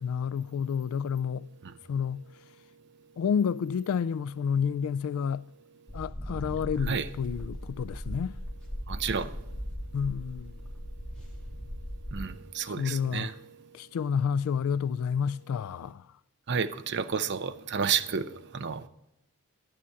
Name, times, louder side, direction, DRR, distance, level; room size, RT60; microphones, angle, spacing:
voice 1, 0.0-1.5 1.9-2.2 3.2-5.5 5.9-8.4 9.9-10.5 12.6-13.3 13.7-16.1, left 7 dB, 70° left, 0.3 m, -30 dB
sound 1, 5.9-12.3, equal, 5° left, 3.0 m, -38 dB
voice 2, 8.9-9.3 12.1-13.4 16.5-18.9, right 6 dB, 50° right, 0.6 m, -31 dB
11.5 x 9.9 x 4.6 m
head